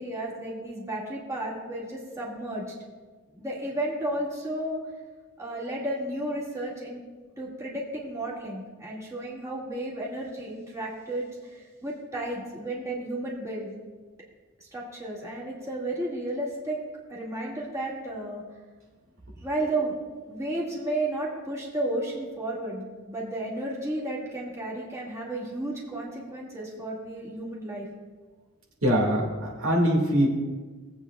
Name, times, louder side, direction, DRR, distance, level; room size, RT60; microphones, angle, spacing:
voice 1, 0.0-2.6 3.3-4.8 5.4-7.0 7.4-13.7 14.6-16.8 17.1-18.4 19.4-27.9, right 1 dB, 15° right, -6 dB, 2.1 m, -33 dB
voice 2, 28.8-30.3, equal, 65° right, -2 dB, 2.1 m, -23 dB
18.5 x 8.3 x 2.4 m, 1.4 s
head